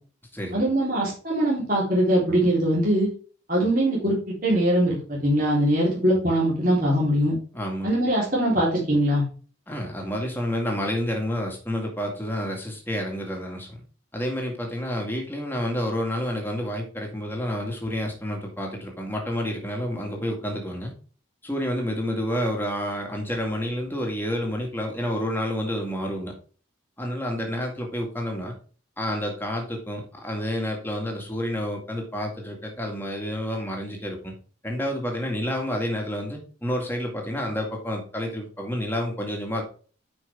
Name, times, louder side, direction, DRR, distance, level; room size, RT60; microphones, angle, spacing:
voice 1, 0.5-3.1 3.5-7.3 7.8-9.3, right 1 dB, 45° right, -5 dB, 3.6 m, -22 dB
voice 2, 7.5-7.9 9.7-13.8 14.1-20.9 21.4-26.3 27.0-28.5 29.0-34.3 34.6-39.6, equal, 10° left, 1 dB, 2.0 m, -29 dB
9.3 x 5.2 x 3.5 m, 0.39 s
head